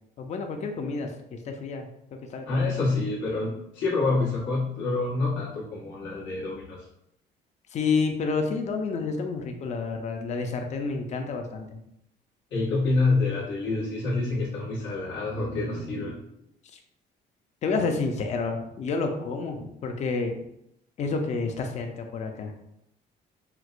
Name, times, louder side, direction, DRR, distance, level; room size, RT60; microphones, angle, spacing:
voice 1, 0.2-2.8 7.7-11.8 16.7-16.8 17.6-20.4 21.0-22.5, left 4 dB, 40° left, 4 dB, 0.4 m, -29 dB
voice 2, 2.5-6.8 12.5-16.2, left 3 dB, 85° left, -6 dB, 1.2 m, -27 dB
4.4 x 2.0 x 2.4 m, 0.79 s
cardioid pair, 135°, 19 cm